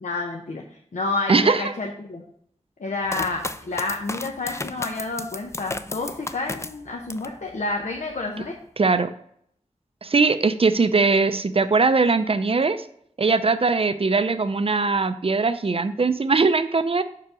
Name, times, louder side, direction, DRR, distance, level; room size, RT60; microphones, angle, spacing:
voice 1, 0.0-0.6 0.9-2.2 2.8-8.6, left 3 dB, 70° left, 1 dB, 0.8 m, -29 dB
voice 2, 1.3-1.6 8.8-9.1 10.0-12.8 13.2-17.0, right 4 dB, 45° right, 11 dB, 0.5 m, -20 dB
sound 1, 3.1-7.4 7.8-8.5, left 2 dB, 20° left, 0.4 m, -34 dB
5.7 x 4.8 x 5.0 m, 0.69 s
wide cardioid pair, 70°, 13 cm